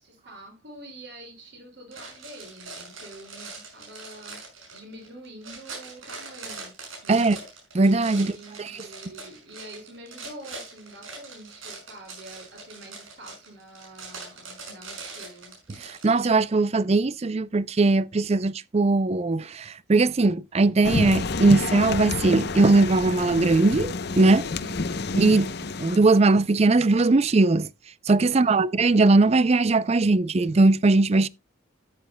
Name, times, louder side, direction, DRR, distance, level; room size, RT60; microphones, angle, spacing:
voice 1, 0.0-4.4 4.7-6.7 7.0-7.3 8.1-15.5 24.6-25.1 28.3-28.7, right 1 dB, 55° right, 5.9 m, -46 dB
sound 1, 1.9-16.3, right 4 dB, 80° right, 6.1 m, -42 dB
voice 2, 7.7-8.3 15.8-24.5 25.2-27.7 28.1-31.3, right 3 dB, 30° right, 0.4 m, -20 dB
sound 2, 20.8-26.0, left 3 dB, 55° left, 0.7 m, -29 dB
14.0 x 9.1 x 2.2 m
head